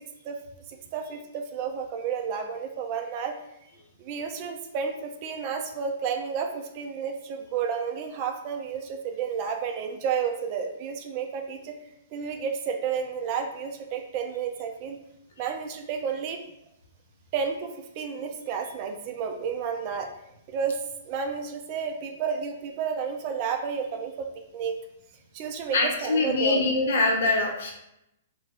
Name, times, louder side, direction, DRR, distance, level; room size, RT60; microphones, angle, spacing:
voice 1, 0.7-3.4 4.0-11.7 12.1-15.0 15.4-16.4 17.3-20.1 20.5-20.8 21.0-24.3 24.5-24.8 25.3-26.7, right 6 dB, 40° right, 4 dB, 0.4 m, -31 dB
voice 2, 25.7-27.7, left 3 dB, 65° left, 1 dB, 0.7 m, -23 dB
2.3 x 2.2 x 3.4 m, 0.83 s
figure-of-eight pair, 115°, 0 cm